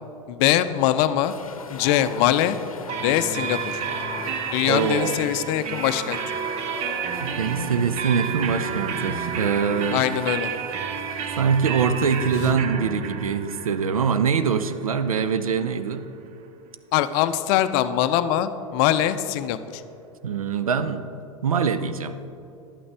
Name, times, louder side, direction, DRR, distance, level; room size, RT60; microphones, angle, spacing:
voice 1, 0.3-1.3 1.7-2.6 3.0-3.8 4.5-6.2 9.9-10.5 12.4-12.5 16.9-19.8, left 12 dB, 45° left, 12 dB, 0.5 m, -22 dB
sound 1, 1.2-12.5, left 4 dB, 80° left, 0.7 m, -40 dB
sound 2, 2.9-16.5, right 7 dB, 40° right, 0.7 m, -31 dB
voice 2, 4.7-5.2 7.2-10.0 11.4-16.0 20.2-21.0 21.4-22.1, right 6 dB, 80° right, 11 dB, 0.5 m, -23 dB
11.0 x 8.6 x 3.4 m, 2.8 s
figure-of-eight pair, 90°, 18 cm